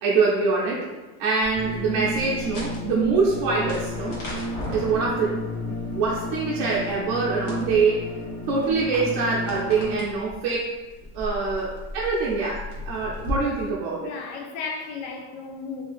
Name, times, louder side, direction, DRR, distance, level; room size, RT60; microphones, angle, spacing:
voice 1, 0.0-0.9 1.2-4.2 4.7-8.1 8.5-10.7 11.1-14.1, right 4 dB, 50° right, 0.6 m, -24 dB
sound 1, 1.4-13.3, left 1 dB, 45° left, 1.2 m, -39 dB
sound 2, 1.5-10.0, left 1 dB, 25° left, 1.1 m, -32 dB
voice 2, 14.0-15.8, left 5 dB, 65° left, 0.7 m, -34 dB
2.7 x 2.6 x 3.3 m
supercardioid pair, 155°, 47 cm